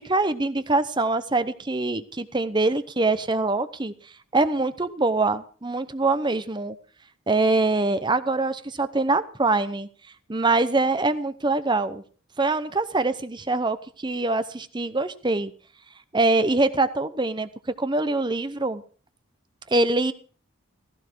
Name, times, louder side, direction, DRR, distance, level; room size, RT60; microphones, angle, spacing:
voice 1, 0.0-3.9 4.3-6.8 7.3-9.9 10.3-12.0 12.4-15.5 16.1-17.5 17.8-18.8 19.7-20.1, right 2 dB, 20° right, 12 dB, 0.8 m, -24 dB
15.5 x 15.0 x 4.6 m, 0.40 s
head